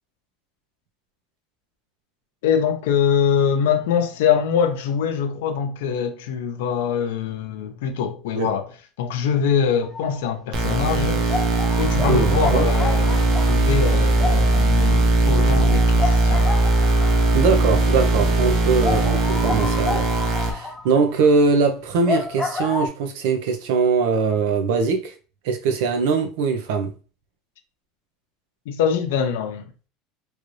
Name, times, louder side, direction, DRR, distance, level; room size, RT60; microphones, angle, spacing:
voice 1, 2.4-8.7 9.0-11.4 11.8-16.5 28.7-29.7, left 7 dB, 85° left, 0.6 m, -23 dB
sound 1, 9.8-10.3 10.6-10.7 11.3-17.6 18.0-18.1 18.4-18.5 18.8-22.9, left 3 dB, 15° left, 0.5 m, -30 dB
sound 2, 10.5-20.5, right 2 dB, 45° right, 0.7 m, -19 dB
voice 2, 12.1-12.7 17.3-25.1 25.4-26.9, right 4 dB, 75° right, 0.7 m, -21 dB
3.1 x 2.6 x 3.2 m
supercardioid pair, 120°, 0 cm